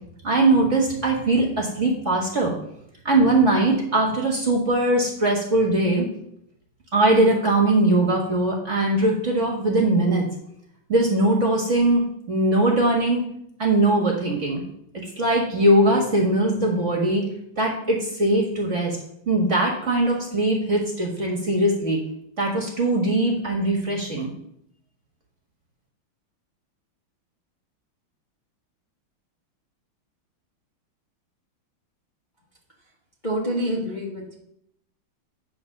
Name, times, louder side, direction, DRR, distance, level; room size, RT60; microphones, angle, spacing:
voice 1, 0.2-2.5 3.0-6.0 6.9-10.2 10.9-13.2 13.6-14.6 15.2-17.3 17.6-19.0 19.2-22.0 22.4-24.3, right 2 dB, 40° right, -1 dB, 1.8 m, -21 dB
voice 2, 33.2-34.4, equal, 25° left, -5 dB, 1.5 m, -27 dB
9.0 x 4.3 x 6.5 m, 0.74 s
omnidirectional pair, 2.3 m